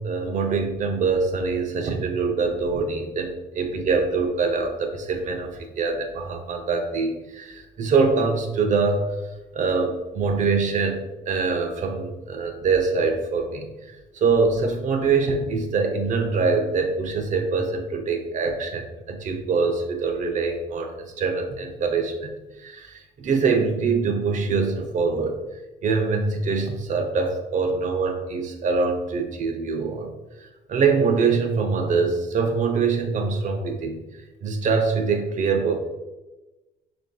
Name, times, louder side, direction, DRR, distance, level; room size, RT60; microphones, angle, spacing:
voice 1, 0.0-9.1 9.5-22.3 22.6-25.3 25.8-30.1 30.4-34.0 34.4-35.8, right 4 dB, 45° right, 5 dB, 0.7 m, -24 dB
6.2 x 2.7 x 2.3 m, 1.1 s
cardioid pair, 110°, 17 cm